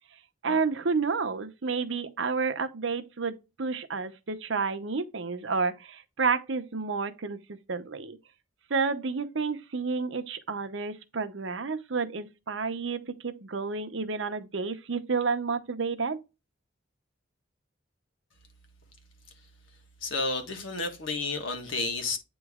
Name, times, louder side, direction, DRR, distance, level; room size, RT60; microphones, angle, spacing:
voice 1, 0.4-8.2 8.7-16.2, right 4 dB, 75° right, 0.8 m, -30 dB
voice 2, 20.0-22.2, left 3 dB, 85° left, 1.5 m, -31 dB
8.8 x 3.1 x 3.6 m
head